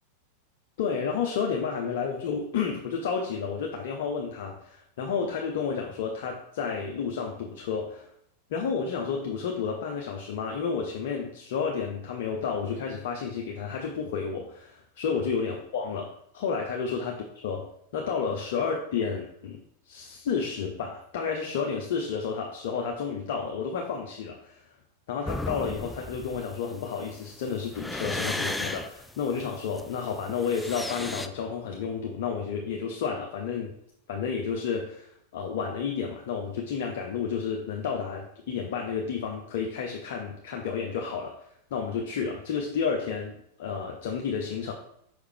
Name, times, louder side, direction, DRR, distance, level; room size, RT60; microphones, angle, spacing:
voice 1, 0.8-8.1 8.5-17.6 17.9-19.6 19.9-24.6 25.1-33.7 34.1-41.3 41.7-44.7, left 6 dB, 55° left, 1 dB, 0.7 m, -31 dB
sound 1, 25.3-31.3, left 2 dB, 5° left, 0.3 m, -35 dB
5.6 x 4.7 x 3.5 m, 0.71 s
figure-of-eight pair, 90°, 0 cm